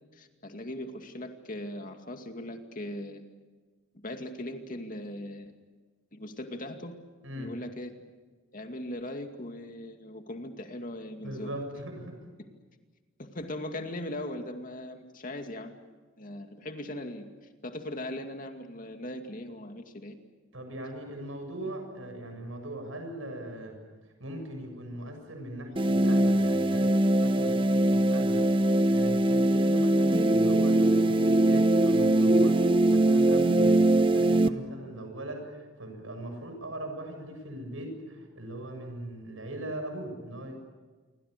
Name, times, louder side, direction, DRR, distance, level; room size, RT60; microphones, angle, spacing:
voice 1, 0.1-3.2 3.9-5.5 6.1-7.0 7.3-8.1 8.5-11.5 13.2-15.8 16.2-17.3 17.6-20.2, left 1 dB, 45° left, 5 dB, 2.3 m, -39 dB
voice 2, 11.2-12.2 20.5-23.7 24.2-28.5 28.9-40.5, right 1 dB, 85° right, 5 dB, 7.4 m, -39 dB
sound 1, 25.8-34.5, right 1 dB, 25° right, 0.8 m, -22 dB
28.0 x 24.0 x 6.8 m, 1.4 s
head